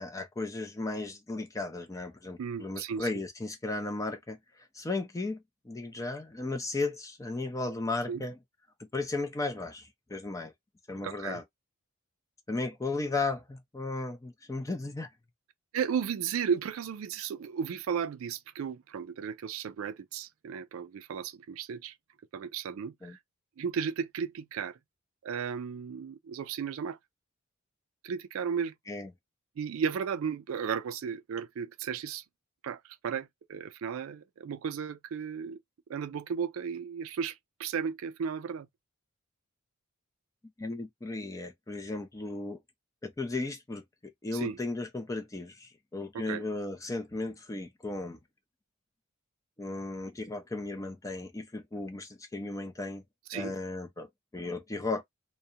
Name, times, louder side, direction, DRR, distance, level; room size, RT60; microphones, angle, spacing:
voice 1, 0.0-8.4 8.8-10.5 10.9-11.4 12.5-15.1 23.0-23.2 28.9-29.1 40.6-42.6 43.0-43.8 44.2-48.2 49.6-53.0 53.3-55.0, left 2 dB, 15° left, 0.4 m, -35 dB
voice 2, 2.4-3.1 8.1-8.2 11.0-11.4 15.7-22.0 22.3-23.2 23.6-24.8 25.2-27.0 28.0-28.7 29.6-32.2 32.6-35.6 35.9-38.7 44.3-44.6 46.1-46.4 53.3-53.5, right 7 dB, 70° right, 0.3 m, -34 dB
2.4 x 2.1 x 2.6 m
head